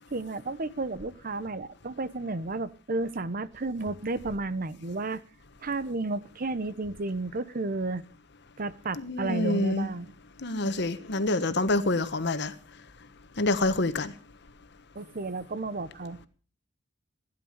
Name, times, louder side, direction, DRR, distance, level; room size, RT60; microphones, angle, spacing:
voice 1, 0.1-5.2 5.6-8.0 8.6-10.1 14.9-16.2, right 3 dB, 50° right, 0.9 m, -32 dB
voice 2, 9.0-9.9 10.4-12.5 13.4-14.1, left 2 dB, 65° left, 1.3 m, -27 dB
16.5 x 10.5 x 6.6 m
head